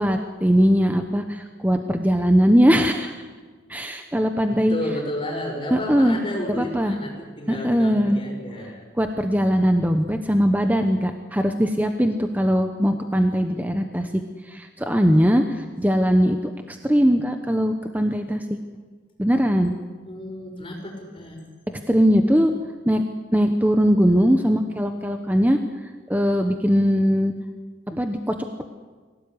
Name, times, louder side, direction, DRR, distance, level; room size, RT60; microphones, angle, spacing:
voice 1, 0.0-3.2 3.7-4.8 5.7-6.2 6.6-7.0 7.5-8.2 9.0-16.4 16.7-18.4 19.2-19.7 21.9-22.5 22.9-23.1 23.3-27.3 27.9-28.6, equal, 10° right, 6 dB, 1.0 m, -20 dB
voice 2, 4.5-8.9 20.1-21.4, left 1 dB, 25° left, 0 dB, 6.6 m, -32 dB
24.0 x 17.5 x 9.8 m, 1.4 s
head